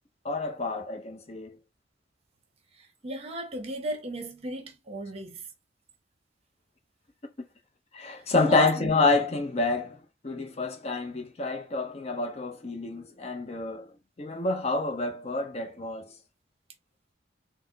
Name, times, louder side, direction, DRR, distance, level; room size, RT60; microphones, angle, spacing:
voice 1, 0.2-1.6 7.9-10.0 10.2-13.9 14.2-16.1, left 3 dB, 35° left, 0.5 m, -28 dB
voice 2, 2.7-5.5 8.2-8.9, right 1 dB, 35° right, 0.8 m, -36 dB
4.1 x 2.0 x 3.8 m
head